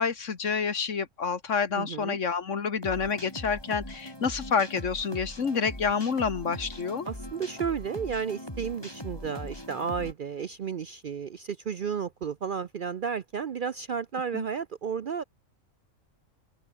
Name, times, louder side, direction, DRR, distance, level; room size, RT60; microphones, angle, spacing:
voice 1, 0.0-7.1 14.3-14.5, left 6 dB, 65° left, 1.9 m, -28 dB
voice 2, 1.7-2.2 7.0-15.2, right 6 dB, 50° right, 0.6 m, -32 dB
sound 1, 2.8-10.1, left 1 dB, 20° left, 6.7 m, -40 dB
open air
omnidirectional pair, 1.4 m